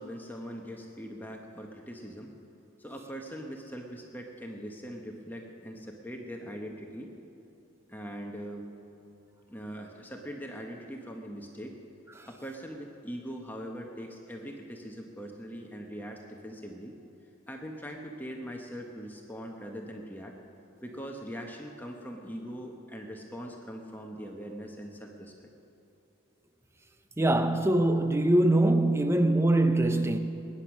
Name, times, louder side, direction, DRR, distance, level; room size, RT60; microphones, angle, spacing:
voice 1, 0.0-2.3 2.8-7.1 7.9-8.6 9.5-11.7 12.3-16.9 17.5-20.3 20.8-25.5, equal, 10° left, 1.1 m, -41 dB
voice 2, 27.2-30.2, right 1 dB, 10° right, 0.6 m, -23 dB
22.0 x 10.0 x 6.1 m
head